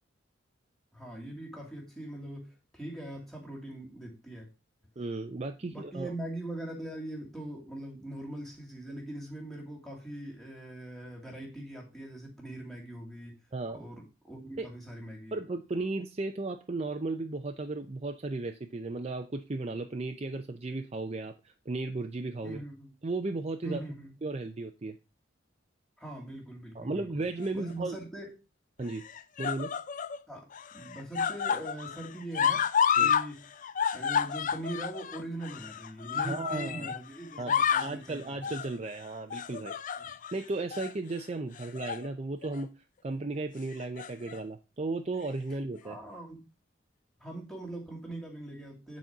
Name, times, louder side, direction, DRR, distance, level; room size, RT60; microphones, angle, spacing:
voice 1, 0.9-4.5 5.7-13.4 13.7-15.4 22.4-22.9 23.6-24.1 26.0-27.2 27.5-28.3 30.3-30.4 30.7-33.5 33.9-38.4 40.0-40.1 45.8-46.4 47.2-49.0, right 1 dB, ahead, -2 dB, 2.4 m, -42 dB
voice 2, 5.0-6.1 13.5-13.8 14.6-14.7 15.3-22.6 23.0-23.8 24.2-25.0 26.7-28.0 28.8-29.0 29.4-29.7 33.0-33.1 36.2-36.9 37.4-39.8 40.1-42.7 43.0-46.0, right 2 dB, 35° right, 6 dB, 0.5 m, -35 dB
sound 1, 27.4-28.0 28.9-30.2 30.5-33.3 33.5-37.0 37.3-38.0 38.4-38.7 39.3-40.3 40.7-40.9 41.6-42.1 42.4-42.6 43.7-44.4 45.3-45.4, left 7 dB, 40° left, 0.4 m, -30 dB
9.0 x 4.3 x 5.9 m, 0.29 s
head